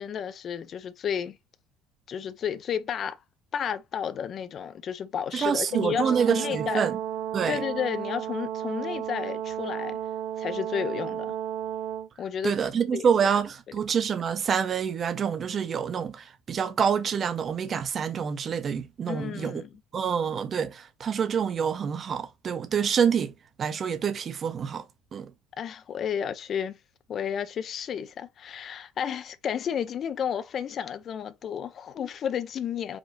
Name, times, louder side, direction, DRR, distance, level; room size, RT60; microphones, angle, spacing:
voice 1, 0.0-1.4 2.1-3.2 3.5-6.9 7.5-10.0 10.4-11.3 12.2-13.1 13.7-13.8 19.1-19.7 25.6-26.8 27.1-33.0, left 8 dB, 35° left, 0.4 m, -32 dB
voice 2, 5.3-6.9 7.3-7.6 12.4-19.6 19.9-23.3 23.6-24.8 25.1-25.3, right 7 dB, 30° right, 0.6 m, -27 dB
Brass instrument, 5.7-12.1, right 10 dB, 75° right, 0.4 m, -33 dB
4.9 x 2.6 x 3.0 m
cardioid pair, 160°, 0 cm